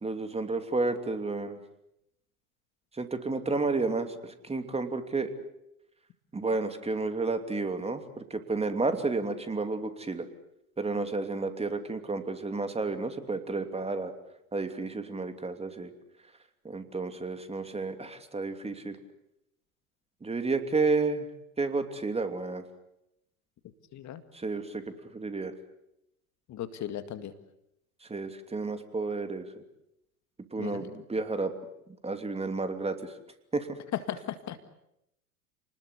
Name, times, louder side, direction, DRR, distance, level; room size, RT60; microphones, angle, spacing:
voice 1, 0.0-1.6 2.9-5.3 6.3-10.3 10.8-14.1 14.5-15.9 16.6-19.0 20.2-21.3 21.6-22.6 24.3-24.8 25.1-25.5 28.1-29.6 30.5-31.5 32.0-33.1 33.5-33.7, right 3 dB, 15° right, 8 dB, 2.9 m, -31 dB
voice 2, 23.9-24.2 26.5-27.3 30.6-30.9 33.9-34.7, left 11 dB, 40° left, 10 dB, 2.1 m, -36 dB
30.0 x 20.5 x 8.3 m, 0.82 s
hypercardioid pair, 90°, 45 cm